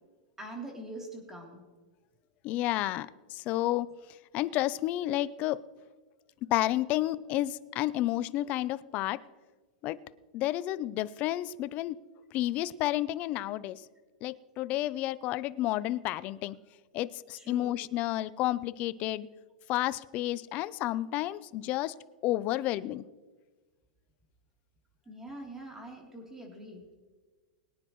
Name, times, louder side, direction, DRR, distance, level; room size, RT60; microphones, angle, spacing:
voice 1, 0.4-1.6 17.4-17.8 25.0-26.8, right 1 dB, 10° right, 0 dB, 3.2 m, -43 dB
voice 2, 2.4-3.9 4.3-5.6 6.5-9.2 9.8-10.0 10.3-12.0 12.3-13.8 14.2-16.6 16.9-19.3 19.7-21.9 22.2-23.0, left 15 dB, 35° left, 16 dB, 0.5 m, -31 dB
22.5 x 9.8 x 3.1 m, 1.3 s
supercardioid pair, 145°, 4 cm